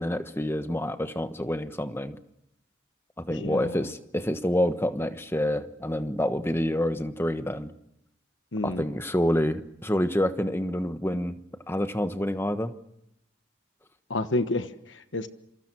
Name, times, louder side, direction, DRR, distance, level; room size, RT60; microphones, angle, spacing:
voice 1, 0.0-2.2 3.2-7.7 8.6-11.4 11.7-12.7, left 1 dB, 10° left, 9 dB, 1.2 m, -27 dB
voice 2, 3.3-3.9 8.5-8.8 14.1-15.3, left 2 dB, 70° left, 10 dB, 1.3 m, -30 dB
28.0 x 26.0 x 6.2 m, 0.80 s
head